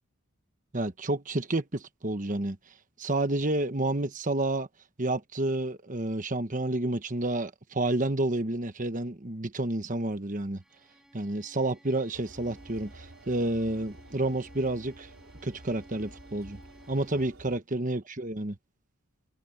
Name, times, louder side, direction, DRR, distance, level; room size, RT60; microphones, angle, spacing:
voice 1, 0.7-2.6 3.0-4.7 5.0-10.6 11.1-15.1 15.4-16.6 16.9-18.5, right 2 dB, 35° right, 1.2 m, -30 dB
Bowed string instrument, 10.6-17.5, equal, ahead, 7.8 m, -56 dB
sound 1, 12.1-17.6, right 1 dB, 70° right, 3.6 m, -51 dB
head